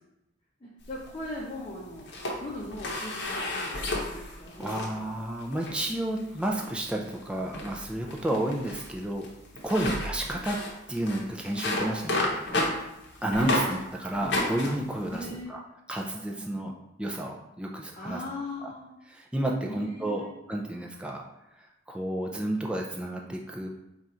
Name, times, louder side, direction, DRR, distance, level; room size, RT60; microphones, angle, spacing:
voice 1, 0.6-2.1 2.4-5.1 8.3-8.6 9.8-9.9 13.3-13.7 15.1-15.6 16.4-16.5 17.9-18.9 19.7-20.3, left 1 dB, 30° left, -7 dB, 0.6 m, -39 dB
sound 1, 0.8-1.6 2.0-4.9 5.4-5.8 6.4-6.8 7.1-7.2 7.5-13.8 14.1-15.4, left 1 dB, 65° left, 0.8 m, -32 dB
voice 2, 4.6-9.3 9.6-10.6 10.9-12.3 13.2-15.6 15.9-16.7 17.0-18.2 18.6-18.7 19.1-21.2 21.6-23.7, right 1 dB, 5° right, 0 dB, 0.3 m, -31 dB
3.9 x 2.4 x 4.2 m, 0.91 s
head